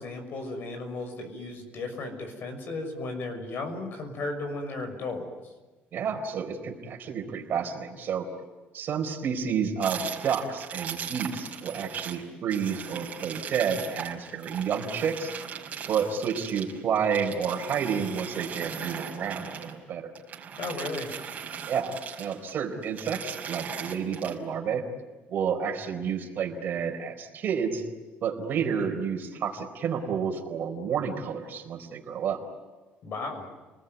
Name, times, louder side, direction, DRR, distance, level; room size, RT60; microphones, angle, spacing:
voice 1, 0.0-5.3 20.6-21.1 33.0-33.5, left 3 dB, 55° left, 6 dB, 6.3 m, -35 dB
voice 2, 5.9-8.3 8.7-15.3 15.9-20.1 21.7-24.8 25.3-27.8 28.2-32.4, right 7 dB, 50° right, 4 dB, 4.3 m, -30 dB
heavy-metal-chain-dragging-handling, 9.8-12.2 12.5-19.8 20.2-22.5 22.8-24.4, right 7 dB, 35° right, 5.2 m, -39 dB
30.0 x 20.5 x 9.5 m, 1.2 s
cardioid pair, 135°, 4 cm